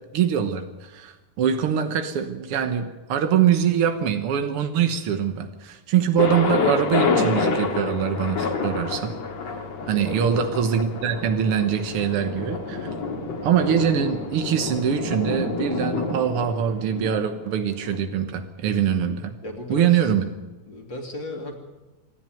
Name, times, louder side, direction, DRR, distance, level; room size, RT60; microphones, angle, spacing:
voice 1, 0.1-9.1 9.4-9.5 9.9-12.9 13.4-19.3 19.7-20.3, right 8 dB, 70° right, 7 dB, 1.4 m, -23 dB
Thunder, 6.2-18.0, left 4 dB, 50° left, 3.1 m, -28 dB
voice 2, 9.8-10.3 19.4-20.1 20.7-21.6, left 1 dB, 35° left, 2 dB, 3.1 m, -35 dB
27.0 x 10.5 x 9.2 m, 1.2 s
omnidirectional pair, 4.1 m